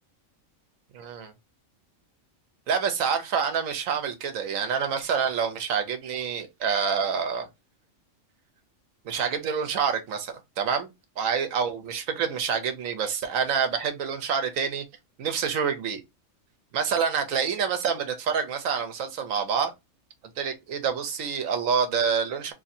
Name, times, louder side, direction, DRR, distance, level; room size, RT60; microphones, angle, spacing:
voice 1, 0.9-1.3 2.7-7.5 9.0-10.9 11.2-14.8 15.2-16.0 16.7-19.7 20.4-22.5, right 6 dB, 85° right, 1.2 m, -27 dB
2.7 x 2.7 x 4.1 m
omnidirectional pair, 1.4 m